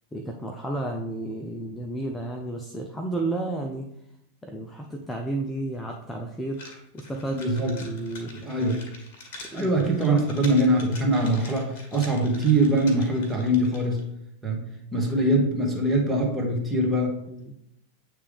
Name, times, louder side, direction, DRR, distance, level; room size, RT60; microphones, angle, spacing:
voice 1, 0.1-3.9 4.4-7.4 7.6-8.3 9.5-9.7 10.1-10.2 17.3-17.5, right 2 dB, 10° left, 2 dB, 0.6 m, -32 dB
sound 1, 6.5-14.0, left 2 dB, 45° left, 1.6 m, -45 dB
voice 2, 7.3-8.0 8.3-8.8 9.5-14.0 14.4-14.6 14.9-17.2, right 1 dB, 10° right, -2 dB, 1.5 m, -23 dB
8.3 x 3.3 x 3.5 m, 0.78 s
figure-of-eight pair, 90°, 0 cm